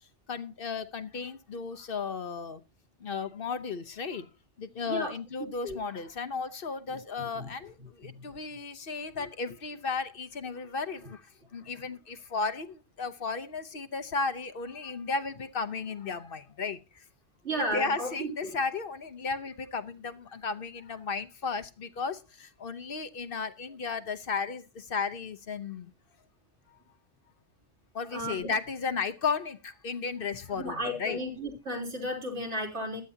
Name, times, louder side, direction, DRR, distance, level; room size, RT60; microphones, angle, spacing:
voice 1, 0.3-2.6 3.0-4.3 4.6-17.0 17.5-25.9 26.7-26.8 27.9-31.2, left 4 dB, 55° left, 1.0 m, -34 dB
voice 2, 17.4-18.3 28.1-28.5 30.5-33.0, equal, 85° right, 4.1 m, -33 dB
15.0 x 11.0 x 2.8 m
omnidirectional pair, 1.1 m